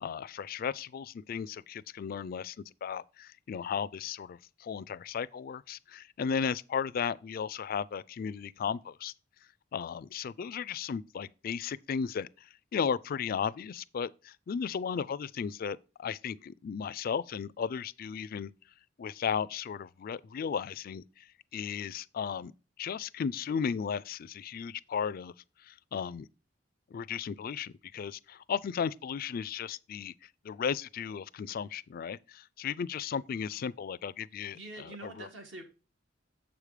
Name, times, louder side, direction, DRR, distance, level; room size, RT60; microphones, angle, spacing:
voice 1, 0.0-2.6 2.8-9.1 9.7-12.3 12.7-18.5 19.0-21.0 21.5-22.5 22.8-25.3 25.7-26.3 26.9-30.1 30.4-35.3, left 7 dB, 50° left, 0.3 m, -35 dB
voice 2, 34.5-35.6, right 2 dB, 70° right, 1.8 m, -45 dB
7.1 x 5.1 x 4.8 m
head